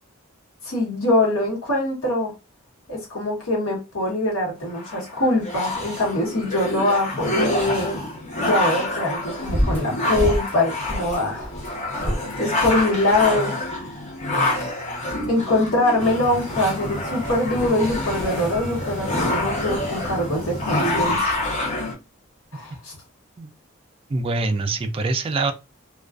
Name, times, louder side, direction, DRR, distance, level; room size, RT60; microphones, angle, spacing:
voice 1, 0.6-2.3 2.9-8.1 8.4-11.5 12.4-13.6 15.3-21.5 22.5-22.9, left 1 dB, 80° left, 1.1 m, -23 dB
sound 1, 2.9-3.0 9.4-14.1 14.5-14.8 15.2-15.7 16.2-21.6, equal, 10° left, 1.0 m, -32 dB
sound 2, 4.7-21.9, left 1 dB, 35° left, 0.8 m, -27 dB
sound 3, 16.0-21.2, equal, 60° left, 1.3 m, -33 dB
voice 2, 24.1-25.5, right 3 dB, 25° right, 0.3 m, -24 dB
2.4 x 2.2 x 2.3 m
head